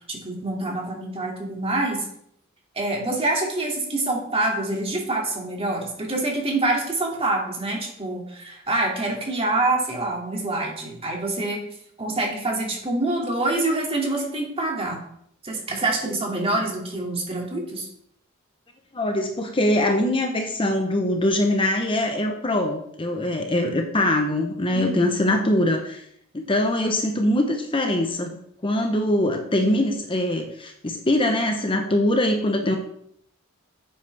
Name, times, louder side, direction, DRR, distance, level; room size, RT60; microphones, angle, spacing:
voice 1, 0.1-2.1 2.8-11.6 12.0-15.0 15.4-17.9 24.7-25.1, right 2 dB, 30° right, -1 dB, 2.4 m, -26 dB
voice 2, 18.9-26.0 26.3-28.3 28.6-32.8, left 1 dB, 25° left, 4 dB, 0.9 m, -23 dB
10.0 x 8.4 x 3.4 m, 0.71 s
head